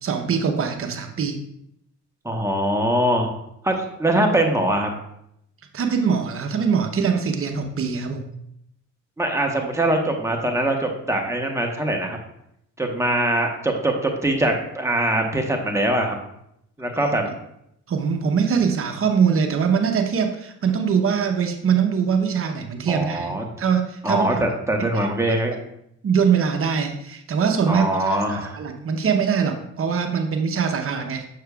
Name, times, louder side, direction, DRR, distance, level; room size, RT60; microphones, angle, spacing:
voice 1, 0.0-1.4 5.7-8.2 17.9-24.4 24.8-25.1 26.0-31.3, right 6 dB, 45° right, 5 dB, 0.8 m, -22 dB
voice 2, 2.2-3.3 3.6-4.9 9.2-12.2 12.8-16.2 16.8-17.2 22.9-23.4 24.0-25.6 27.7-28.6, right 1 dB, 10° right, 1 dB, 1.0 m, -22 dB
6.7 x 6.5 x 2.3 m, 0.77 s
cardioid pair, 90°, 30 cm